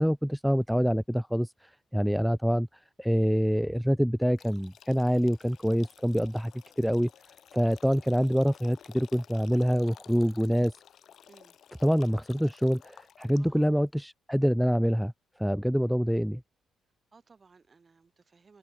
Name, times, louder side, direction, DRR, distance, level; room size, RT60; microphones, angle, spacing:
voice 1, 0.0-2.7 3.0-7.1 7.5-10.7 11.8-15.1 15.4-16.4, equal, ahead, 0.4 m, -26 dB
sound 1, 4.4-13.7, left 9 dB, 65° left, 1.6 m, -55 dB
voice 2, 11.2-11.6 13.4-13.7 17.1-18.6, right 4 dB, 35° right, 4.4 m, -59 dB
open air
cardioid pair, 90°, 0 cm